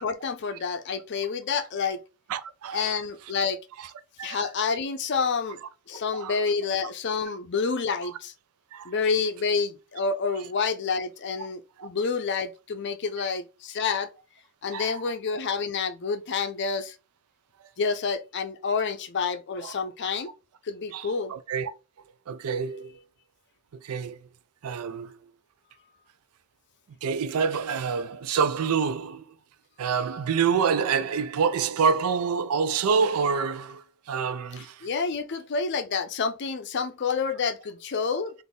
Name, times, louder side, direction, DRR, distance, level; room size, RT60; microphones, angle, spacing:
voice 1, 0.0-2.0 2.7-3.6 4.2-5.6 5.9-8.3 8.8-14.1 14.6-17.0 17.8-20.3 20.6-21.3 34.6-38.3, left 5 dB, 55° left, 0.5 m, -28 dB
voice 2, 2.3-2.9 3.8-3.9 4.2-4.4 6.1-6.4 8.0-8.1 8.7-8.9 11.8-11.9 14.7-15.0 19.6-19.7 20.9-21.7 22.3-23.0 23.8-24.2 24.6-25.2 27.0-29.4 29.8-34.9, right 6 dB, 80° right, 0.4 m, -27 dB
4.0 x 2.6 x 3.6 m
head